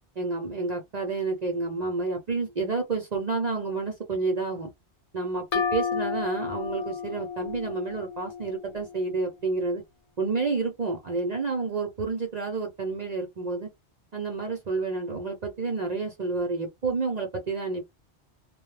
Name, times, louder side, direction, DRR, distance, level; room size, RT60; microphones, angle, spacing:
voice 1, 0.2-4.7 5.1-9.8 10.2-13.7 14.1-17.8, right 3 dB, 45° right, 0.6 m, -29 dB
sound 1, 5.5-9.1, left 6 dB, 55° left, 0.4 m, -32 dB
2.1 x 2.0 x 3.1 m
omnidirectional pair, 1.2 m